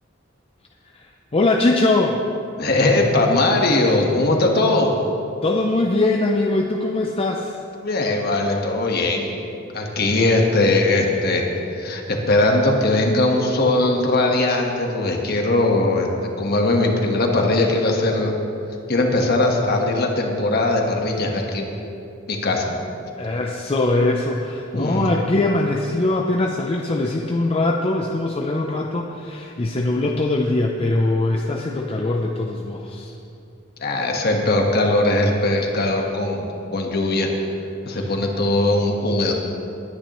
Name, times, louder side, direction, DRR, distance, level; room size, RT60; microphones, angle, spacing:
voice 1, 0.9-2.2 5.4-7.6 9.7-9.9 23.2-33.1 37.9-38.1, left 2 dB, 30° left, 1 dB, 0.6 m, -22 dB
voice 2, 2.6-4.9 7.8-9.3 9.7-11.4 11.8-16.1 16.4-18.3 18.9-21.7 22.3-22.9 24.7-25.1 33.8-36.4 36.7-37.3 37.8-39.3, left 2 dB, 50° left, 1 dB, 1.4 m, -20 dB
19.5 x 9.7 x 3.1 m, 2.7 s
head